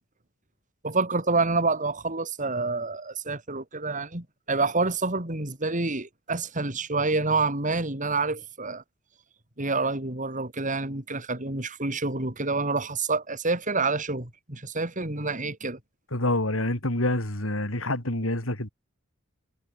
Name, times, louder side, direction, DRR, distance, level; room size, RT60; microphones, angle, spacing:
voice 1, 0.8-8.8 9.6-15.8, right 3 dB, 40° right, 4.0 m, -28 dB
voice 2, 16.1-18.7, left 1 dB, 90° left, 5.3 m, -27 dB
head